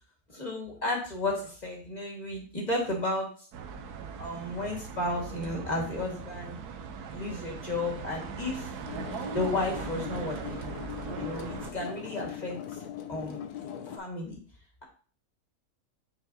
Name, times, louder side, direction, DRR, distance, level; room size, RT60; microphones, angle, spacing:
voice 1, 0.3-3.5 4.2-6.6 7.1-8.7 9.3-10.6 11.2-12.8 13.1-13.7 14.0-14.4, left 2 dB, 30° left, -1 dB, 1.7 m, -33 dB
sound 1, 3.5-11.7, right 6 dB, 80° right, 1.3 m, -39 dB
sound 2, 8.9-14.0, left 9 dB, 80° left, 1.2 m, -40 dB
9.1 x 4.5 x 2.7 m, 0.41 s
omnidirectional pair, 1.6 m